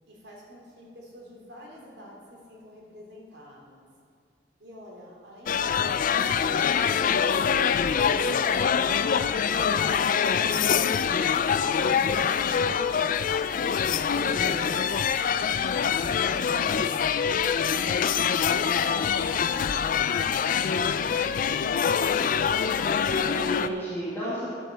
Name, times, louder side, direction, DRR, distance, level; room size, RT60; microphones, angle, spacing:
voice 1, 0.1-3.9 4.6-9.5 14.1-17.2 17.6-22.3, equal, 75° right, -3 dB, 2.8 m, -48 dB
sound 1, 5.5-23.7, left 7 dB, 50° left, 0.3 m, -25 dB
voice 2, 14.1-14.6 22.8-24.5, equal, 15° left, -10 dB, 2.0 m, -32 dB
10.5 x 7.8 x 6.4 m, 2.1 s
head